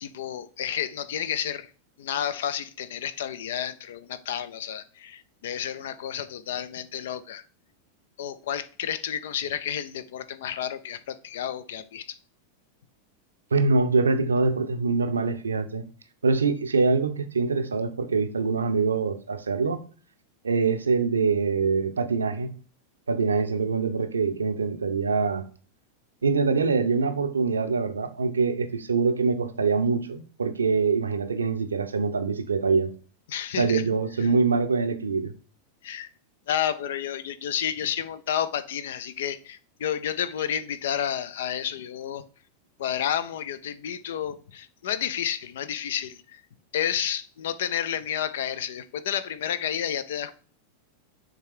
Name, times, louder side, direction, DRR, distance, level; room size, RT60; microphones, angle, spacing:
voice 1, 0.0-1.7 2.0-7.4 8.2-12.2 33.3-33.8 34.2-34.3 35.8-36.1 36.5-42.2 42.8-46.4 46.7-50.3, left 9 dB, 60° left, 0.5 m, -31 dB
voice 2, 13.5-15.8 16.2-19.8 20.4-22.5 23.1-25.4 26.2-32.9 33.6-35.3, right 4 dB, 75° right, 0.6 m, -24 dB
6.7 x 3.6 x 4.7 m
figure-of-eight pair, 90°, 0 cm